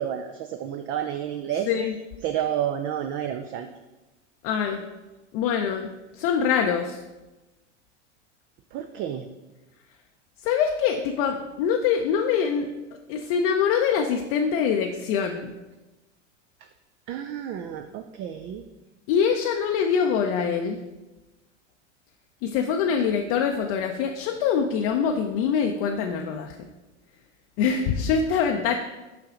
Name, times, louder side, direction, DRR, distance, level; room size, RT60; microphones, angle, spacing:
voice 1, 0.0-1.7 2.2-3.7 8.7-9.2 17.1-18.6 28.7-28.8, right 10 dB, 35° right, 6 dB, 0.4 m, -30 dB
voice 2, 1.7-2.0 4.4-4.8 5.3-7.0 10.4-15.5 19.1-20.8 22.4-26.6 27.6-28.7, left 7 dB, 50° left, 3 dB, 0.6 m, -24 dB
5.8 x 5.8 x 3.8 m, 1.1 s
hypercardioid pair, 100°, 37 cm